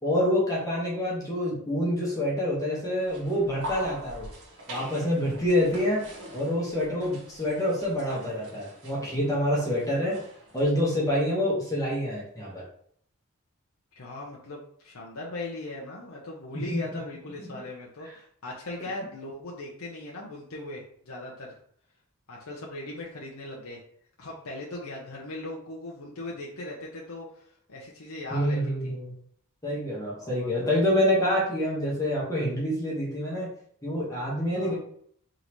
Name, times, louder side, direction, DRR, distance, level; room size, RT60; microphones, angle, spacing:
voice 1, 0.0-4.3 4.7-6.0 6.3-10.2 10.5-12.6 16.5-16.8 17.4-17.6 28.3-29.1 29.6-33.5 33.8-34.7, equal, 15° left, -6 dB, 1.4 m, -27 dB
sound 1, 3.0-10.6, equal, 70° right, 1.9 m, -44 dB
voice 2, 13.9-21.6 22.3-23.8 24.2-28.6 28.8-28.9 30.2-30.7 34.6-34.7, left 2 dB, 75° left, -3 dB, 0.8 m, -39 dB
3.9 x 3.8 x 3.1 m, 0.62 s
head